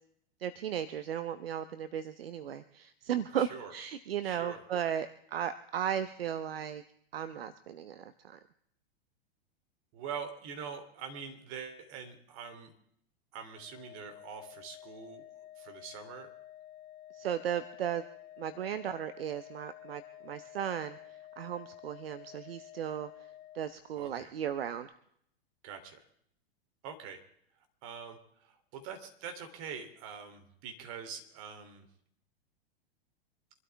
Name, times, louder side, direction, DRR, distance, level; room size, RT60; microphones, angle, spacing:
voice 1, 0.4-6.8 7.1-8.4 17.1-18.0 18.4-21.0 21.4-23.1 23.5-24.9, right 9 dB, 70° right, 12 dB, 0.9 m, -36 dB
voice 2, 3.4-3.7 4.2-4.6 9.9-12.7 13.3-15.2 15.6-16.3 24.0-24.3 25.6-26.0 26.8-27.2 27.8-31.9, right 6 dB, 45° right, 6 dB, 3.2 m, -44 dB
Organ, 13.5-24.2, left 12 dB, 40° left, 0.9 m, -52 dB
26.0 x 12.5 x 3.5 m, 0.69 s
hypercardioid pair, 100°, 30 cm